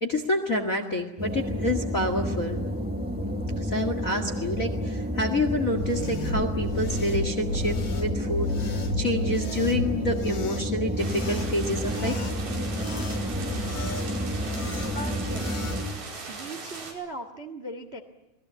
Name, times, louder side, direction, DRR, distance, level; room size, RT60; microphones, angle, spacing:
voice 1, 0.0-2.7 3.6-12.2, left 1 dB, 30° left, 6 dB, 1.6 m, -28 dB
sound 1, 1.2-15.8, equal, 5° right, 2.5 m, -30 dB
sound 2, 5.7-15.8, left 2 dB, 55° left, 4.2 m, -35 dB
sound 3, 11.0-16.9, right 4 dB, 85° right, 6.8 m, -39 dB
voice 2, 14.9-15.5 16.3-18.0, right 1 dB, 30° right, 6 dB, 1.3 m, -38 dB
27.5 x 20.0 x 8.2 m, 1.0 s
omnidirectional pair, 4.2 m